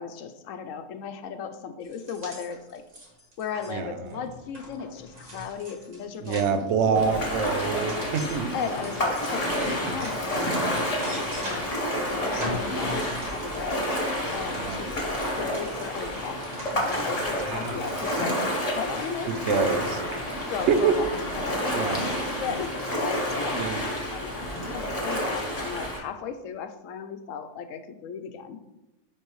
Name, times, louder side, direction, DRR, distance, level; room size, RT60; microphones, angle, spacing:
voice 1, 0.0-2.8 3.4-7.3 8.5-11.7 12.1-13.9 14.3-16.4 16.7-18.4 18.7-19.8 20.5-23.7 24.1-28.6, left 6 dB, 90° left, 9 dB, 1.0 m, -36 dB
sound 1, 1.8-11.9 12.2-19.5, left 1 dB, 35° right, 1.4 m, -41 dB
voice 2, 6.2-8.5 14.6-14.8 17.5-17.9 19.3-19.8 20.7-21.0 21.7-22.0 23.6-23.8, right 6 dB, 70° right, 8 dB, 0.8 m, -26 dB
Ocean, 6.9-26.0, equal, 30° left, 1.1 m, -29 dB
9.9 x 3.3 x 3.1 m, 0.99 s
omnidirectional pair, 1.3 m